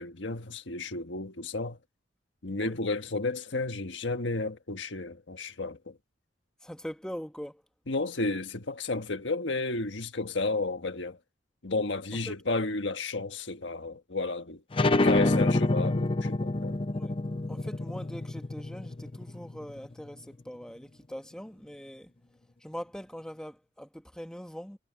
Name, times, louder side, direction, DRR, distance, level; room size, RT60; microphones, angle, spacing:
voice 1, 0.0-1.8 2.4-6.0 7.9-11.2 11.6-14.6 14.9-16.8, left 3 dB, 80° left, 1.4 m, -32 dB
voice 2, 6.6-7.6 12.1-12.3 16.9-17.1 17.5-22.1 22.6-24.8, equal, 5° left, 1.4 m, -42 dB
sound 1, 14.7-20.0, left 2 dB, 30° left, 0.6 m, -27 dB
head